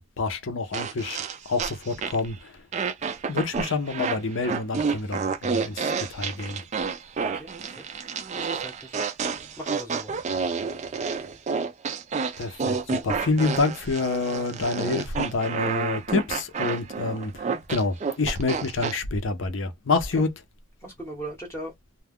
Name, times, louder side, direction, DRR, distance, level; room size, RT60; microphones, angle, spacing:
voice 1, 0.0-2.7 3.3-6.6 12.4-20.3, left 3 dB, 60° left, 0.6 m, -27 dB
sound 1, 0.7-2.3 2.7-19.0, right 5 dB, 30° right, 0.3 m, -29 dB
voice 2, 7.2-7.8 8.3-9.1 9.6-10.2 20.8-21.7, right 1 dB, 10° left, 0.7 m, -39 dB
2.2 x 2.2 x 3.4 m
head